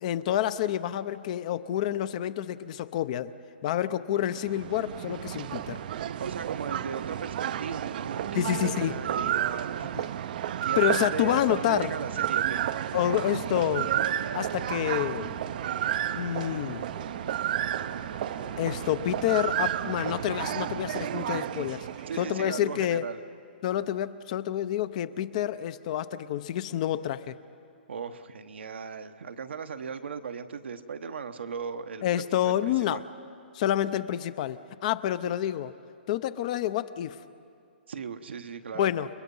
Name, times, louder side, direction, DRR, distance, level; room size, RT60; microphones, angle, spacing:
voice 1, 0.0-3.3 3.6-5.8 8.3-9.0 9.9-10.0 10.8-11.9 12.9-13.9 14.3-15.3 16.2-16.9 18.6-21.9 22.2-23.1 23.6-27.4 32.0-33.0 33.5-35.7 36.1-37.2 38.7-39.1, left 12 dB, 40° left, 14 dB, 0.7 m, -28 dB
sound 1, 4.2-22.6, right 11 dB, 50° right, 0.6 m, -32 dB
voice 2, 6.2-9.9 10.6-12.6 22.1-23.2 27.9-32.0 32.4-33.0 37.9-38.9, right 6 dB, 85° right, 7 dB, 1.1 m, -37 dB
sound 2, 13.6-19.0, left 6 dB, 75° left, 3.0 m, -50 dB
30.0 x 21.0 x 5.5 m, 2.4 s
hypercardioid pair, 150°, 6 cm